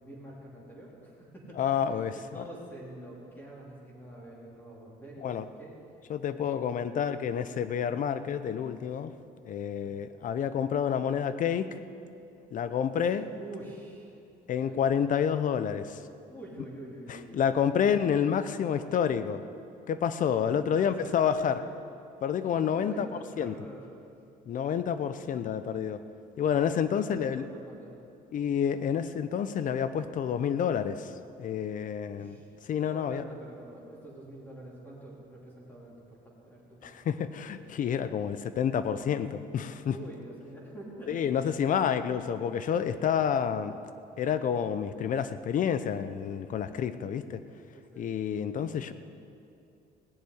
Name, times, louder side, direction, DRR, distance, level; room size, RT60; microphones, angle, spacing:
voice 1, 0.0-1.8 2.1-5.3 5.6-5.7 6.7-6.8 9.8-10.0 13.4-14.2 14.5-14.7 16.3-17.5 20.3-21.7 22.7-23.8 26.9-28.0 32.1-32.5 32.9-37.2 39.9-42.2 47.7-48.1, right 1 dB, 10° left, -5 dB, 3.7 m, -46 dB
voice 2, 1.6-2.4 5.2-5.5 6.1-9.1 9.4-11.7 12.5-13.3 14.5-16.0 17.1-19.4 19.9-21.6 22.2-23.1 23.4-23.5 24.5-26.0 26.4-27.5 28.3-31.1 31.4-32.4 32.7-33.2 36.8-40.0 41.1-43.8 44.2-47.4 48.0-48.9, left 8 dB, 50° left, 12 dB, 0.7 m, -29 dB
17.0 x 6.8 x 9.6 m, 2.6 s
cardioid pair, 110°, 17 cm